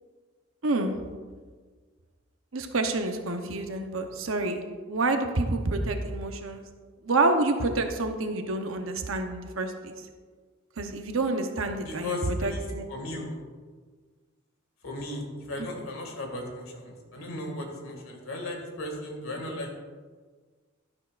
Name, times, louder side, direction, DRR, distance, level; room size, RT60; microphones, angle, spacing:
voice 1, 0.6-0.9 2.5-4.6 4.9-6.6 7.0-9.9 10.8-12.9 15.6-15.7, right 2 dB, 70° right, 5 dB, 0.9 m, -28 dB
voice 2, 11.8-13.4 14.8-19.8, left 2 dB, 80° left, 1 dB, 2.1 m, -36 dB
12.0 x 10.5 x 2.5 m, 1.5 s
head